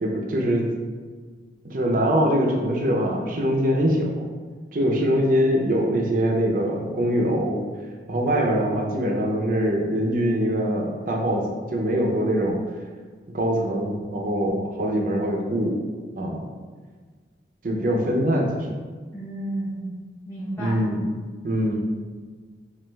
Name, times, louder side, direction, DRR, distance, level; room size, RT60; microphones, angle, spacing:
voice 1, 0.0-0.7 1.6-4.2 4.7-7.6 8.1-12.6 13.3-15.8 16.2-16.5 17.6-18.7 20.6-21.0 21.4-21.7, equal, 45° right, 0 dB, 0.5 m, -23 dB
voice 2, 19.1-19.9 20.2-20.8, right 1 dB, 15° left, -12 dB, 0.7 m, -31 dB
6.0 x 2.4 x 2.2 m, 1.5 s
head